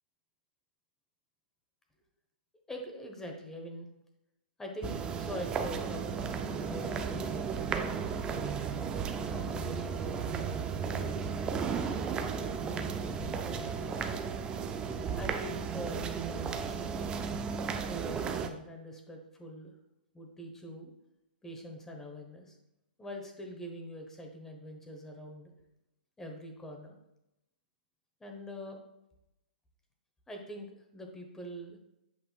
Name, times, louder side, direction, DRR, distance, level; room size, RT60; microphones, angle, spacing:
voice 1, 2.7-3.9 4.6-8.6 9.3-14.2 15.2-17.2 17.8-19.7 20.1-20.9 21.4-22.6 23.0-25.5 26.2-26.9 28.2-28.8 30.3-31.8, equal, 10° left, 2 dB, 0.9 m, -44 dB
sound 1, 4.8-18.5, right 6 dB, 15° right, 0.4 m, -34 dB
8.0 x 5.4 x 2.3 m, 0.87 s
hypercardioid pair, 145°, 6 cm